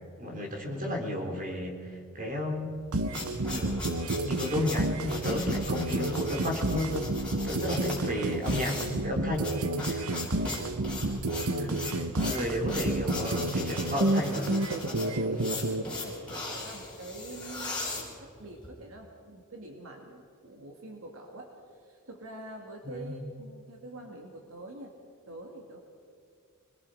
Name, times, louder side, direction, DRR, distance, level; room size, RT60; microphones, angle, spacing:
voice 1, 0.2-2.8 3.5-3.8 4.1-7.2 7.4-9.5 9.8-10.0 11.6-14.5 22.9-23.2, left 1 dB, 40° right, 2 dB, 3.7 m, -33 dB
voice 2, 0.7-1.1 9.9-10.5 14.8-25.0 25.3-25.8, right 2 dB, 65° right, 1 dB, 2.5 m, -45 dB
sound 1, 2.7-18.7, left 2 dB, 5° left, 7.6 m, -39 dB
sound 2, 2.9-15.8, right 2 dB, 85° right, 1.1 m, -30 dB
26.5 x 22.0 x 5.0 m, 2.4 s
head